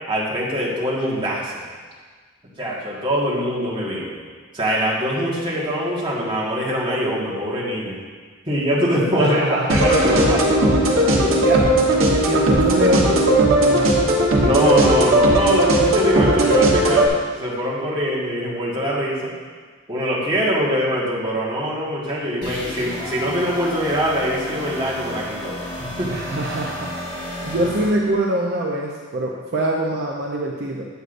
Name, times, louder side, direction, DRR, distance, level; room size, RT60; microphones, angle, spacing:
voice 1, 0.1-1.6 2.6-4.1 4.5-8.0 8.5-9.4 9.7-11.5 14.3-17.1 17.3-19.3 19.9-26.2, equal, 25° right, -7 dB, 1.6 m, -23 dB
voice 2, 9.1-9.7 11.4-11.6 12.2-14.1 26.1-26.9 27.4-30.9, right 1 dB, 55° right, -3 dB, 0.6 m, -24 dB
Short space theme, 9.7-17.1, right 1 dB, 80° right, 1.1 m, -17 dB
sound 1, 22.4-27.9, left 1 dB, 25° left, 1.5 m, -32 dB
8.0 x 7.9 x 2.6 m, 1.5 s
head